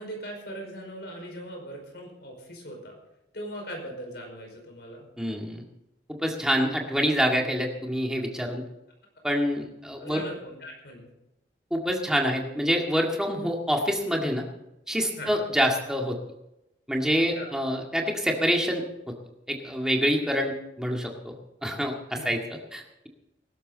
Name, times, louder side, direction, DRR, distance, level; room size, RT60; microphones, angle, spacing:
voice 1, 0.0-3.0 3.3-5.1 10.0-11.1 15.2-15.5 17.2-17.5 22.1-22.3, equal, 65° left, 2 dB, 5.2 m, -40 dB
voice 2, 5.2-5.6 6.2-8.6 9.2-10.2 11.7-14.4 14.9-16.2 16.9-18.8 19.5-21.4 21.6-21.9 22.2-22.4 22.7-23.1, equal, 5° right, 0 dB, 2.0 m, -26 dB
19.5 x 12.0 x 4.1 m, 0.90 s
head